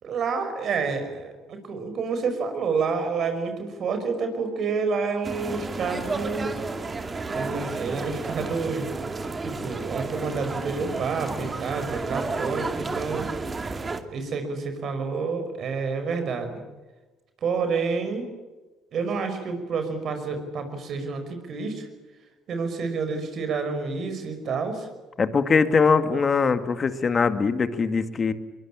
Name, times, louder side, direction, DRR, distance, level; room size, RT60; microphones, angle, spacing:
voice 1, 0.0-6.5 7.3-9.1 9.4-13.3 14.1-16.6 17.4-18.3 18.9-21.9 22.5-24.9, right 4 dB, 55° right, 7 dB, 5.5 m, -29 dB
sound 1, 5.2-14.0, right 3 dB, 30° right, 2.6 m, -32 dB
voice 2, 25.2-28.3, left 5 dB, 40° left, 10 dB, 2.2 m, -22 dB
23.0 x 21.5 x 8.8 m, 1.2 s
supercardioid pair, 70°, 0 cm